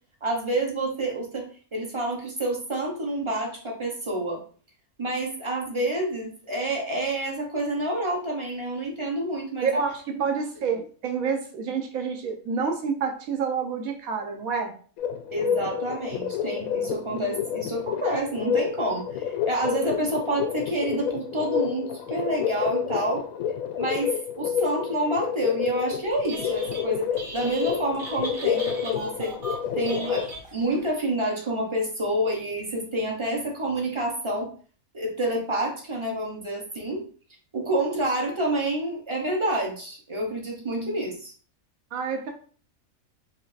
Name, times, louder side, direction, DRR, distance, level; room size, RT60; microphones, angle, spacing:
voice 1, 0.2-4.4 5.0-9.7 10.1-10.2 15.3-23.2 23.8-27.1 27.3-29.3 29.8-30.3 30.5-34.5 34.9-37.0 37.5-41.3, right 1 dB, 25° right, -1 dB, 0.7 m, -28 dB
voice 2, 9.6-14.7 41.9-42.3, right 5 dB, 80° right, 4 dB, 1.2 m, -28 dB
sound 1, 15.0-30.3, left 8 dB, 90° left, 1.0 m, -29 dB
Telephone, 26.1-26.8 27.1-30.8, right 2 dB, 45° right, 1.3 m, -38 dB
4.7 x 2.7 x 2.5 m, 0.42 s
omnidirectional pair, 1.5 m